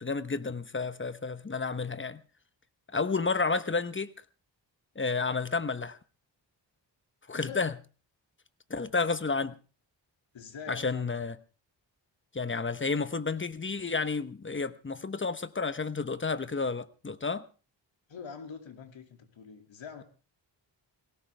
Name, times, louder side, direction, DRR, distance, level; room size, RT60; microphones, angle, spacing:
voice 1, 0.0-2.2 2.9-4.1 4.9-6.0 7.3-7.7 8.7-9.6 10.7-11.4 12.3-17.5, left 4 dB, 25° left, 1.1 m, -31 dB
voice 2, 7.3-7.7 10.3-11.1 18.1-20.0, left 6 dB, 85° left, 2.7 m, -44 dB
18.5 x 17.0 x 3.4 m
cardioid pair, 80°, 45 cm